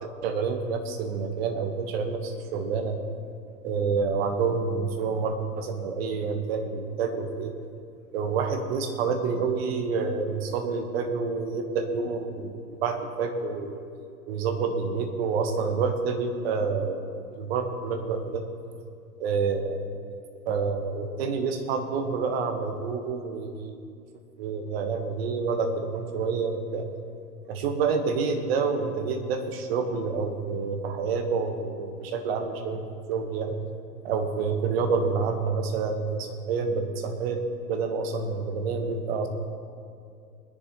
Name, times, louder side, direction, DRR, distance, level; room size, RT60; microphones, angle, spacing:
voice 1, 0.0-3.0 3.6-7.5 8.1-13.8 14.3-17.0 17.3-18.4 19.2-19.8 20.4-23.8 24.4-26.9 27.5-33.6 34.0-39.3, right 5 dB, 40° right, 6 dB, 1.3 m, -28 dB
21.0 x 10.5 x 3.0 m, 2.4 s
figure-of-eight pair, 120°, 49 cm